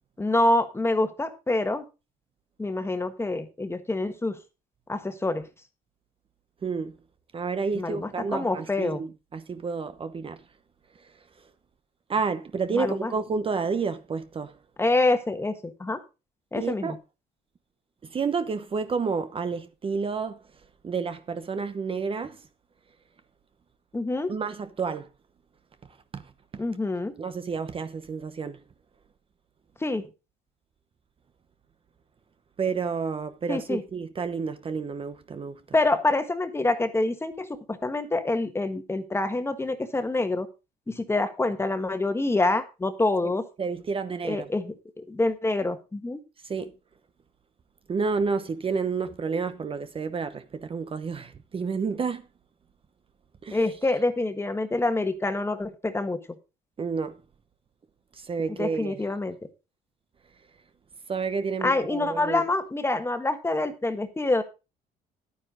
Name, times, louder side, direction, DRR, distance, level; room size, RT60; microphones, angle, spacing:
voice 1, 0.2-1.8 2.6-4.4 4.9-5.4 7.7-9.0 12.7-13.1 14.8-16.0 16.5-17.0 23.9-24.3 26.6-27.1 29.8-30.0 33.5-33.8 35.7-40.5 40.9-43.4 44.2-46.2 53.5-56.2 58.5-59.3 61.6-64.4, left 2 dB, 15° left, 1.5 m, -26 dB
voice 2, 6.6-7.0 7.3-10.4 12.1-14.5 16.5-17.0 18.1-20.4 20.8-22.4 24.3-25.1 26.1-26.3 26.5-26.6 27.2-28.6 32.6-35.6 43.2-43.3 43.6-44.5 46.4-46.7 47.9-52.3 53.4-53.6 56.8-57.2 58.1-59.0 61.1-62.4, right 5 dB, 30° right, 0.9 m, -30 dB
11.0 x 9.5 x 3.8 m
cardioid pair, 110°, 17 cm